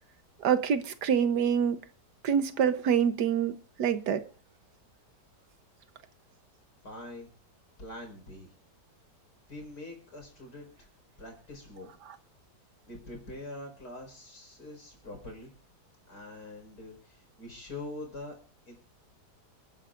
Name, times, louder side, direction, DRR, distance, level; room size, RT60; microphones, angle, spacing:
voice 1, 0.4-1.8 2.2-4.2, right 8 dB, 70° right, 1.6 m, -26 dB
voice 2, 6.8-7.3 7.8-8.5 9.5-10.9 11.2-11.9 12.9-15.5 16.1-18.4 18.7-18.8, left 2 dB, 65° left, 5.4 m, -44 dB
29.0 x 10.5 x 2.5 m
omnidirectional pair, 1.8 m